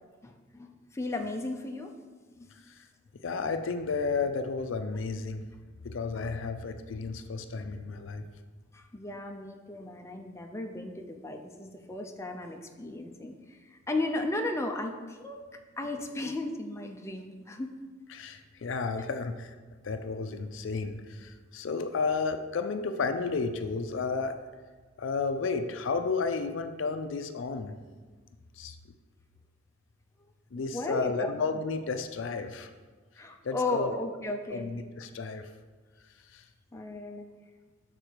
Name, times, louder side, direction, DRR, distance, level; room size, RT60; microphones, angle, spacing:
voice 1, 0.2-1.9 2.3-2.5 6.1-6.2 8.7-15.4 15.8-17.7 30.7-31.3 33.2-34.7 36.7-37.2, left 2 dB, 15° left, 3 dB, 0.4 m, -35 dB
voice 2, 3.2-5.4 5.8-8.3 18.1-19.6 19.8-24.4 25.0-27.7 28.6-28.8 30.5-32.7 33.4-33.9 34.5-35.5 36.3-36.4, left 4 dB, 70° left, 8 dB, 0.4 m, -32 dB
6.5 x 4.0 x 4.5 m, 1.4 s
head